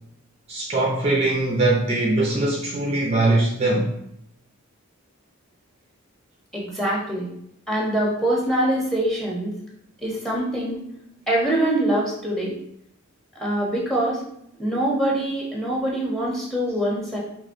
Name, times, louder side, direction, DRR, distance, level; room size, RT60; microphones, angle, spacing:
voice 1, 0.5-3.9, right 2 dB, 30° right, -2 dB, 0.5 m, -21 dB
voice 2, 6.5-7.3 7.7-9.5 10.0-10.8 11.3-12.5 13.4-14.2 14.6-17.2, right 1 dB, ahead, -3 dB, 1.0 m, -24 dB
5.2 x 3.2 x 2.6 m, 0.75 s
head